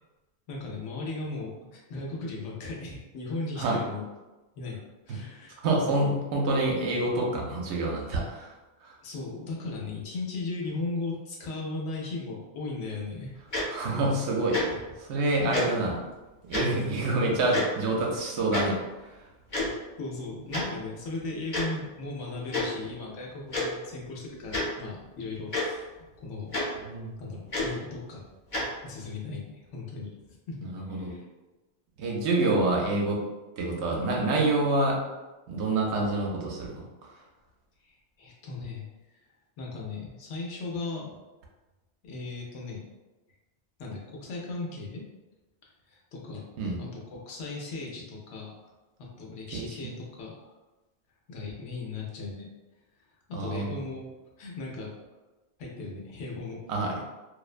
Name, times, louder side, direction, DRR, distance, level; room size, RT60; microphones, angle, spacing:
voice 1, 0.5-4.0 4.6-4.8 5.1-5.6 9.0-13.3 14.7-14.8 15.4-15.7 20.0-26.5 27.2-28.2 28.8-30.1 30.5-31.3 37.8-38.8 39.6-41.1 42.0-42.8 43.8-45.0 45.9-46.5 46.8-48.7 49.0-50.5 51.3-52.5 53.3-54.0 54.4-54.9 55.6-56.6, left 3 dB, 90° left, -2 dB, 0.9 m, -37 dB
voice 2, 5.6-8.5 13.7-14.7 15.0-16.0 16.5-18.8 26.8-27.1 30.6-31.1 32.0-33.2 33.6-35.0 35.5-36.8 46.6-46.8 49.5-50.0 53.3-53.8 56.7-56.9, right 2 dB, 75° right, -1 dB, 0.9 m, -27 dB
Tick-tock, 13.5-13.6 14.5-14.6 15.5-15.6 16.5-16.6 17.5-17.6 18.5-18.6 19.5-19.7 20.5-20.6 21.5-21.6 22.5-22.6 23.5-23.6 24.5-24.6 25.5-25.6 26.5-26.6 27.5-27.7 28.5-28.6, left 3 dB, 45° left, 0.9 m, -28 dB
2.5 x 2.1 x 2.4 m, 1.1 s
omnidirectional pair, 1.2 m